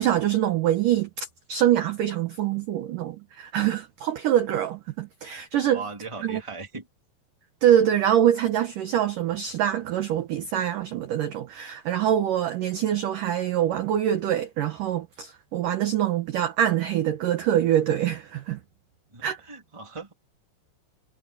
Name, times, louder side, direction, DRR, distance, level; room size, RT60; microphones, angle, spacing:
voice 1, 0.0-5.8 6.2-6.4 7.6-18.6 19.2-19.4, right 11 dB, 70° right, 2.1 m, -24 dB
voice 2, 5.7-6.9 19.1-20.1, right 4 dB, 10° right, 2.4 m, -38 dB
omnidirectional pair, 5.2 m